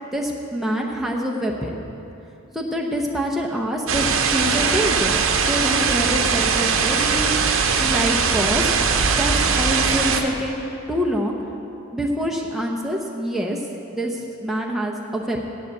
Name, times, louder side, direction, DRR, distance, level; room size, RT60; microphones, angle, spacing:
voice 1, 0.1-1.8 2.5-8.8 9.2-11.4 11.9-13.6 13.9-15.4, equal, ahead, -2 dB, 0.7 m, -26 dB
sound 1, 3.9-10.2, right 5 dB, 65° right, 0.8 m, -20 dB
7.9 x 7.8 x 8.1 m, 2.8 s
head